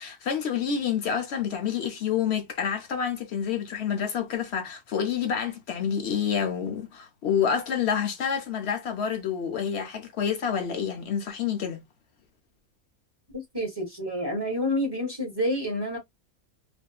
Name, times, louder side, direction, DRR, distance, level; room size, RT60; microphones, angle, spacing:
voice 1, 0.0-11.8, left 7 dB, 60° left, 0.7 m, -28 dB
voice 2, 13.3-16.0, left 1 dB, 20° right, 0.7 m, -28 dB
2.6 x 2.4 x 2.2 m
omnidirectional pair, 1.5 m